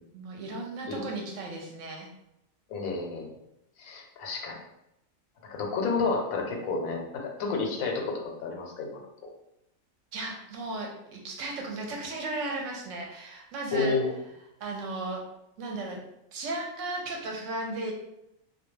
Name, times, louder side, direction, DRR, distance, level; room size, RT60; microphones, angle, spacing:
voice 1, 0.1-2.1 10.1-14.0 14.6-15.2 15.6-16.0 16.3-17.9, right 2 dB, 70° right, 0 dB, 0.9 m, -35 dB
voice 2, 2.7-3.3 3.8-4.6 5.5-9.0 13.7-14.1, left 4 dB, 85° left, 1 dB, 1.0 m, -30 dB
2.3 x 2.2 x 3.0 m, 0.85 s
omnidirectional pair, 1.4 m